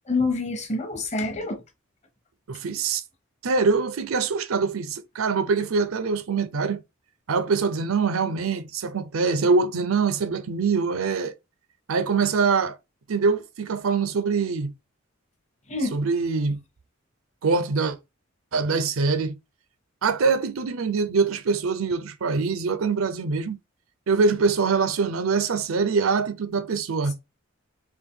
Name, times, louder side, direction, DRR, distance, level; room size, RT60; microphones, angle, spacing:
voice 1, 0.1-1.6 15.7-16.0, left 3 dB, 30° left, 0.8 m, -26 dB
voice 2, 2.5-3.0 3.4-6.8 7.3-11.4 11.9-12.8 13.1-14.7 15.9-16.6 17.4-18.0 18.5-19.3 20.0-23.6 24.1-27.1, right 4 dB, 80° right, 0.6 m, -24 dB
3.6 x 2.6 x 3.6 m
head